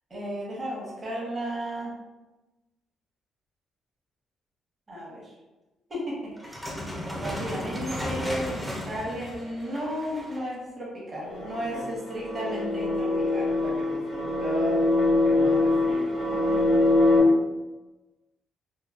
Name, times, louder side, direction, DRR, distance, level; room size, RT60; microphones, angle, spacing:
voice 1, 0.1-2.0 4.9-5.3 5.9-6.8 7.1-13.5, equal, 35° right, -5 dB, 1.0 m, -34 dB
sound 1, 6.4-10.5, equal, 10° right, 0.6 m, -35 dB
sound 2, 11.3-17.2, left 2 dB, 70° left, 0.6 m, -24 dB
voice 2, 13.6-14.8 15.2-16.9, right 1 dB, 80° right, -7 dB, 0.8 m, -37 dB
2.9 x 2.2 x 2.4 m, 1.1 s
cardioid pair, 90°, 0 cm